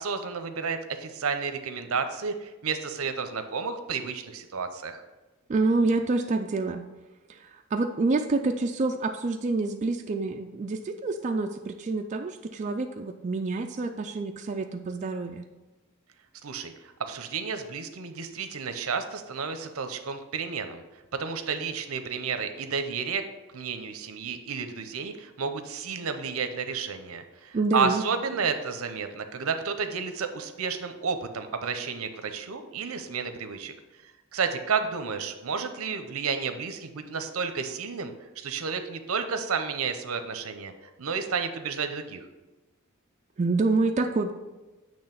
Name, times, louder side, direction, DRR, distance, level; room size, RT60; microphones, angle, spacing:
voice 1, 0.0-5.0 16.4-20.8 21.1-23.2 23.5-33.7 34.0-42.2, right 5 dB, 75° right, 8 dB, 0.7 m, -31 dB
voice 2, 5.5-6.9 7.3-15.5 27.5-28.0 43.4-44.3, right 3 dB, 35° right, 4 dB, 0.3 m, -27 dB
8.8 x 3.1 x 5.8 m, 1.1 s
head